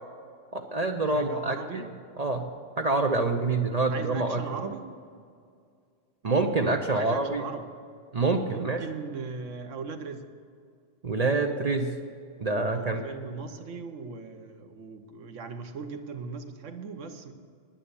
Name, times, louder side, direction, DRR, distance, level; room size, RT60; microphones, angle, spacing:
voice 1, 0.5-1.9 2.2-2.4 2.8-4.4 6.2-7.4 8.1-8.8 11.0-11.9 12.4-13.0, right 3 dB, 40° right, 4 dB, 0.7 m, -26 dB
voice 2, 1.1-1.9 3.9-4.8 6.9-7.6 8.5-10.2 12.7-17.3, right 5 dB, 90° right, 7 dB, 1.3 m, -39 dB
10.0 x 9.9 x 6.9 m, 2.2 s
omnidirectional pair, 1.3 m